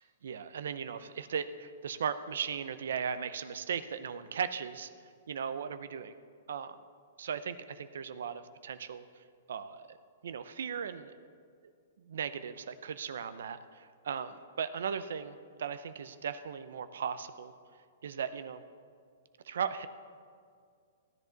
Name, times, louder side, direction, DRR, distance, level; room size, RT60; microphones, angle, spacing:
voice 1, 0.2-4.9 5.3-6.2 6.5-6.8 7.2-9.0 9.5-10.0 10.2-11.2 12.1-17.5 18.0-18.6 19.4-19.9, right 7 dB, 75° right, 12 dB, 0.6 m, -37 dB
16.0 x 10.0 x 4.0 m, 2.1 s
hypercardioid pair, 170°, 0 cm